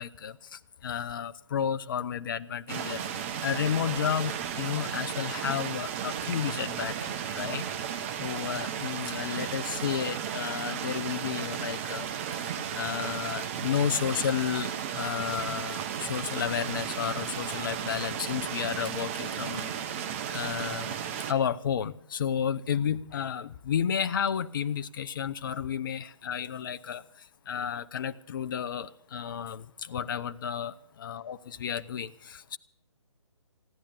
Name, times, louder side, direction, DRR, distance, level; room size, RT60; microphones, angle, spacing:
voice 1, 0.0-3.1 3.4-7.6 8.2-12.1 12.7-19.7 20.3-20.9 21.3-27.0 27.5-32.6, left 8 dB, 40° left, 0.6 m, -32 dB
sound 1, 2.7-21.3, right 8 dB, 25° right, 0.8 m, -34 dB
sound 2, 12.3-15.8 16.3-18.0 18.4-20.4, right 1 dB, 60° right, 4.6 m, -57 dB
15.5 x 10.0 x 8.4 m
figure-of-eight pair, 145°, 16 cm